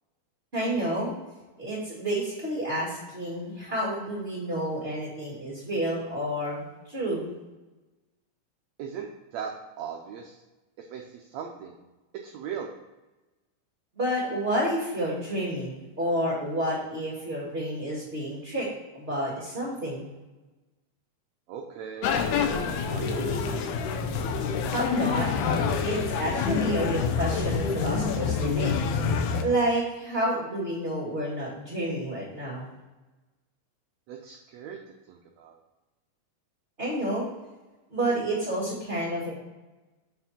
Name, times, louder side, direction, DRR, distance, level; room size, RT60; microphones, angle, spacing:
voice 1, 0.5-1.1 1.6-7.3 14.0-18.7 18.9-20.1 24.7-25.3 25.8-28.7 29.4-32.7 36.8-37.3 37.9-39.3, right 1 dB, 25° right, -7 dB, 1.7 m, -29 dB
voice 2, 8.8-9.5 9.8-10.4 10.8-11.8 12.2-12.7 21.5-22.2 22.8-23.9 34.1-34.8 35.1-35.6, right 7 dB, 90° right, 1 dB, 1.5 m, -39 dB
sound 1, 22.0-29.4, left 6 dB, 75° left, 1.9 m, -27 dB
7.0 x 5.8 x 4.3 m, 1.1 s
omnidirectional pair, 3.9 m